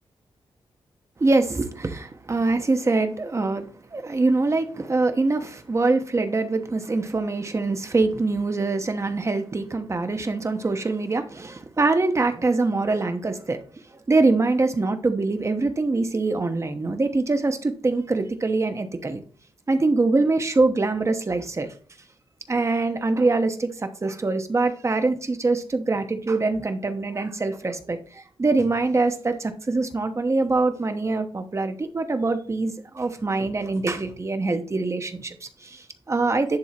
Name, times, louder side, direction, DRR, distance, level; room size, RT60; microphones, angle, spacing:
voice 1, 1.2-13.6 14.1-19.2 19.7-21.7 22.5-36.6, right 3 dB, 30° right, 7 dB, 1.0 m, -24 dB
10.5 x 3.6 x 4.4 m, 0.42 s
wide cardioid pair, 105°, 10 cm